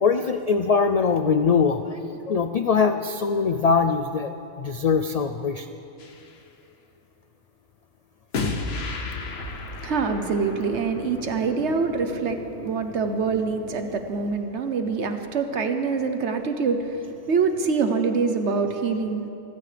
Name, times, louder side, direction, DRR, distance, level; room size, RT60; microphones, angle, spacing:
voice 1, 0.0-4.3 4.6-5.7, left 5 dB, 85° left, 8 dB, 0.3 m, -22 dB
sound 1, 6.0-6.3 8.3-14.3, left 3 dB, 60° left, 1.1 m, -34 dB
voice 2, 9.8-19.2, right 5 dB, 70° right, 7 dB, 1.1 m, -25 dB
25.5 x 13.5 x 3.4 m, 2.9 s
omnidirectional pair, 1.3 m